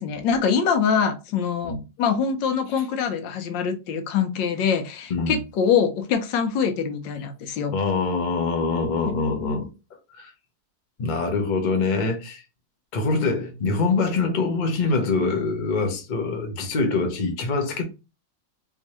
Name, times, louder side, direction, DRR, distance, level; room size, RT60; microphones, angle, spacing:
voice 1, 0.0-7.7, left 6 dB, 80° left, 1.4 m, -24 dB
voice 2, 5.1-5.4 7.7-9.7 10.1-10.3 11.0-12.4 12.9-17.8, left 3 dB, 55° left, 0.5 m, -24 dB
3.5 x 3.1 x 2.8 m
omnidirectional pair, 2.0 m